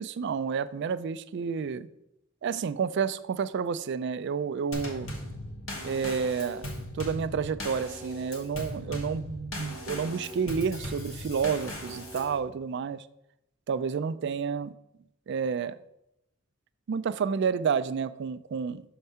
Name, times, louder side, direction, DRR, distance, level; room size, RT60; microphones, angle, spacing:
voice 1, 0.0-1.9 2.4-5.1 5.8-6.7 6.9-13.0 13.7-14.7 15.3-15.8 16.9-18.8, right 6 dB, 60° right, 12 dB, 0.3 m, -30 dB
Drum kit / Snare drum / Bass drum, 4.7-12.4, left 1 dB, 80° left, 1.5 m, -38 dB
6.5 x 4.6 x 5.5 m, 0.83 s
head